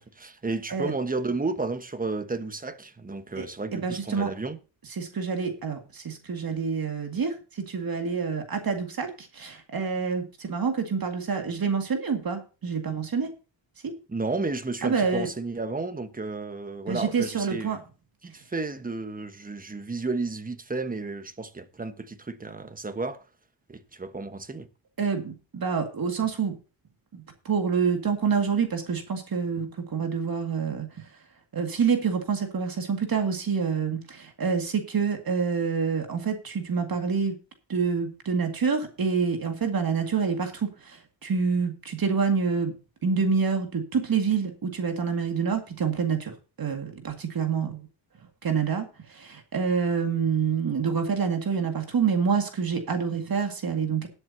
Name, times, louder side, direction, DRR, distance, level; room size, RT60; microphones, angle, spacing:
voice 1, 0.0-4.6 14.1-17.8 18.2-23.3 23.7-24.7, right 3 dB, 20° right, 1.2 m, -32 dB
voice 2, 3.7-4.3 5.0-13.3 13.8-14.0 14.8-15.3 16.9-17.8 25.0-26.6 27.1-31.1 31.5-37.4 37.7-42.7 43.0-47.8 48.4-54.1, right 5 dB, 50° right, 2.1 m, -27 dB
20.5 x 8.0 x 2.8 m
cardioid pair, 110°, 46 cm